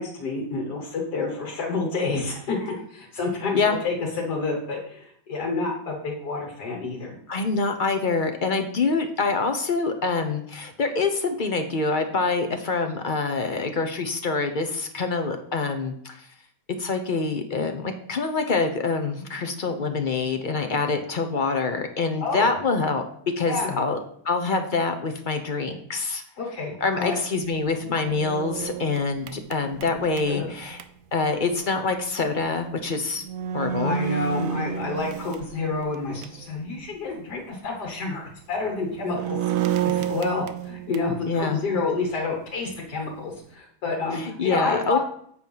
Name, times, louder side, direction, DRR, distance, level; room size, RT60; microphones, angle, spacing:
voice 1, 0.0-7.2 22.2-22.5 23.5-23.8 26.4-27.2 30.3-30.5 33.8-39.4 39.8-45.0, left 3 dB, 80° left, 0 dB, 2.0 m, -29 dB
voice 2, 7.3-16.3 16.8-23.0 23.4-24.0 24.2-26.2 26.8-30.8 31.1-33.2 33.5-34.0 41.3-41.6 44.1-45.0, left 4 dB, 50° left, 6 dB, 0.6 m, -25 dB
sound 1, 27.6-30.9 32.7-32.8 33.2-36.5 36.9-37.0 38.7-41.2, right 9 dB, 65° right, 0.9 m, -30 dB
8.1 x 4.5 x 5.5 m, 0.64 s
omnidirectional pair, 1.7 m